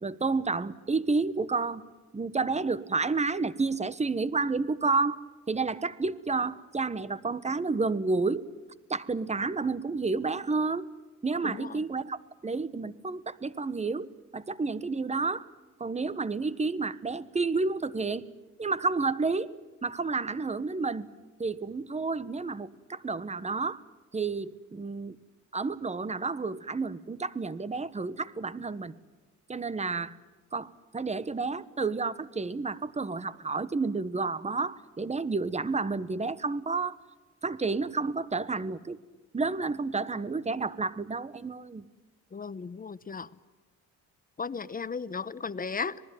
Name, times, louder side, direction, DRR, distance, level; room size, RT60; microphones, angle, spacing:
voice 1, 0.0-1.8 2.1-8.5 8.9-10.9 11.2-14.1 14.3-15.5 15.8-18.2 18.6-19.5 19.8-21.1 21.4-23.8 24.1-25.2 25.5-28.9 29.5-30.2 30.5-37.0 37.4-39.0 39.3-41.8, right 4 dB, 20° right, 17 dB, 1.3 m, -30 dB
voice 2, 11.4-11.8 42.3-43.3 44.4-46.0, left 5 dB, 30° left, 17 dB, 0.9 m, -35 dB
26.5 x 19.5 x 9.2 m, 1.3 s
cardioid pair, 90°, 30 cm